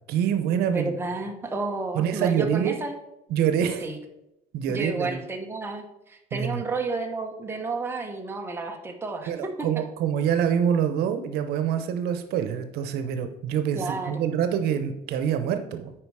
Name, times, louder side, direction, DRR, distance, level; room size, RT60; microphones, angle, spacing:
voice 1, 0.1-1.0 1.9-2.8 3.3-3.8 4.5-5.2 6.3-6.6 9.3-15.9, right 8 dB, 85° right, 8 dB, 0.9 m, -26 dB
voice 2, 0.7-2.9 3.8-4.0 4.7-9.5 13.7-14.2, right 3 dB, 15° right, 2 dB, 1.0 m, -31 dB
8.8 x 5.0 x 4.8 m, 0.87 s
cardioid pair, 150°, 16 cm